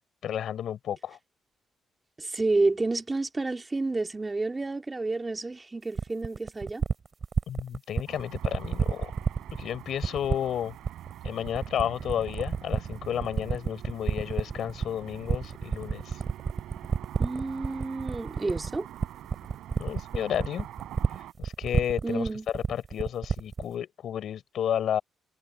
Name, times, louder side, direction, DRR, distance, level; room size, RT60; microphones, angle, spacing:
voice 1, 0.2-1.2 7.5-9.1 9.5-10.7 11.2-16.2 19.8-20.7 21.4-22.3 22.7-25.0, left 9 dB, 70° left, 4.1 m, -32 dB
voice 2, 2.2-6.8 17.2-18.9 22.0-22.5, right 3 dB, 20° right, 2.5 m, -29 dB
sound 1, 6.0-23.7, right 5 dB, 40° right, 4.3 m, -29 dB
Car passing by / Traffic noise roadway noise, 8.1-21.3, right 13 dB, 85° right, 3.8 m, -45 dB
cardioid pair, 90°, 0 cm